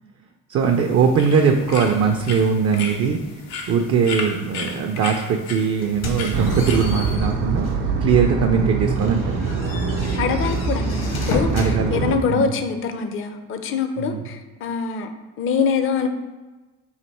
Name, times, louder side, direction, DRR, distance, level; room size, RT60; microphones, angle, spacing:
voice 1, 0.5-3.4 3.7-9.4 11.5-12.5 14.0-14.2, right 6 dB, 40° right, 4 dB, 0.4 m, -21 dB
sound 1, 0.6-7.1, left 4 dB, 85° left, 0.7 m, -34 dB
sound 2, 5.8-7.9 8.4-8.5 8.9-11.7, left 2 dB, 65° left, 1.0 m, -32 dB
sound 3, 6.3-12.2, right 3 dB, 80° right, 0.7 m, -24 dB
voice 2, 10.2-15.1 15.4-16.1, left 5 dB, 35° left, 7 dB, 0.4 m, -24 dB
3.3 x 2.6 x 4.1 m, 1.2 s
supercardioid pair, 70°, 38 cm